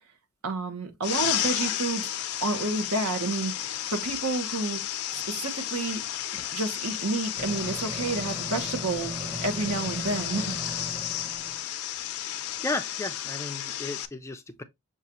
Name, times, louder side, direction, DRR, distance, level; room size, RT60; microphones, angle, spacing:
voice 1, 0.4-2.1 2.4-4.8 5.1-6.0 6.5-10.5, right 3 dB, 85° right, 1.0 m, -30 dB
sound 1, 1.0-14.1, left 11 dB, 85° left, 0.5 m, -32 dB
Microwave oven, 6.4-6.5 7.4-11.6, right 1 dB, 15° right, 0.7 m, -38 dB
voice 2, 12.3-14.6, left 2 dB, 15° left, 0.3 m, -34 dB
6.4 x 2.4 x 2.8 m
head